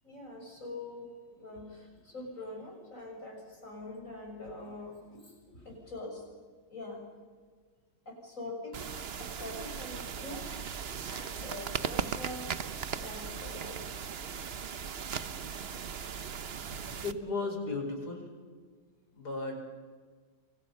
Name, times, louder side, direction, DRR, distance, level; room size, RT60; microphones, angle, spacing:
voice 1, 0.0-6.2 6.7-7.1 8.0-13.8, left 2 dB, 45° left, 0 dB, 6.8 m, -44 dB
sound 1, 8.7-17.1, right 7 dB, 45° right, 0.9 m, -38 dB
voice 2, 17.0-18.3 19.1-19.9, left 3 dB, 60° left, 3 dB, 5.5 m, -35 dB
28.0 x 25.5 x 5.7 m, 1.5 s
omnidirectional pair, 1.9 m